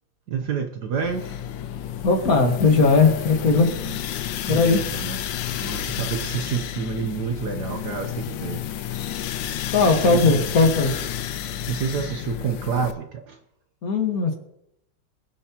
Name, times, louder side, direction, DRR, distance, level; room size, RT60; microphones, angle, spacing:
voice 1, 0.3-1.4 4.5-5.2 5.5-8.9 9.8-10.4 11.7-13.4, right 6 dB, 60° right, 5 dB, 1.3 m, -29 dB
sound 1, 1.0-12.9, left 10 dB, 75° left, 1.2 m, -31 dB
voice 2, 2.0-3.7 4.5-4.8 9.7-10.9 13.8-14.3, left 4 dB, 45° left, 3 dB, 1.8 m, -18 dB
22.5 x 7.6 x 2.9 m, 0.78 s
omnidirectional pair, 2.3 m